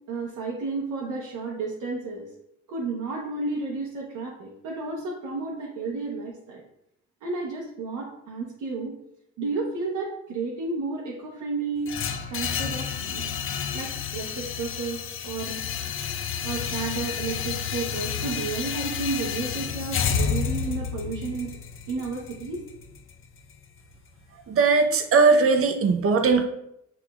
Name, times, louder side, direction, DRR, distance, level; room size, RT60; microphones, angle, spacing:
voice 1, 0.1-2.3 2.7-6.6 7.2-8.9 9.4-11.9 12.3-13.3 13.7-15.6 16.4-21.5 21.9-22.6, right 3 dB, 80° right, -3 dB, 0.9 m, -32 dB
sound 1, 11.9-23.9, left 7 dB, 45° left, 0.5 m, -30 dB
voice 2, 24.5-26.5, right 4 dB, 50° right, 7 dB, 0.7 m, -19 dB
6.0 x 3.6 x 2.4 m, 0.78 s
cardioid pair, 90°, 30 cm